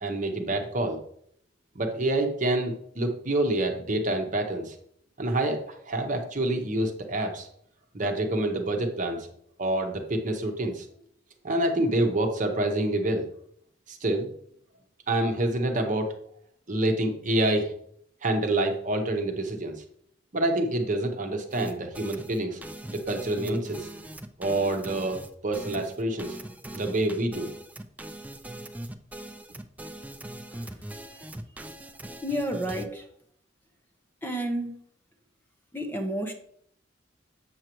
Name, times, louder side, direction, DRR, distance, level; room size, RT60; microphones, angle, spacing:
voice 1, 0.0-1.0 1.7-4.8 5.2-7.5 7.9-9.3 9.6-10.9 11.4-13.3 13.9-14.3 15.1-16.1 16.7-17.7 18.2-19.8 20.3-22.6 22.9-23.9 24.4-25.2 25.4-26.4 26.7-27.5, right 1 dB, 45° right, 4 dB, 1.0 m, -27 dB
sound 1, 21.5-32.9, right 1 dB, 10° right, 0.4 m, -41 dB
voice 2, 32.2-33.0 34.2-34.8 35.7-36.3, right 1 dB, 10° left, 2 dB, 0.9 m, -30 dB
7.8 x 6.5 x 3.0 m, 0.63 s
head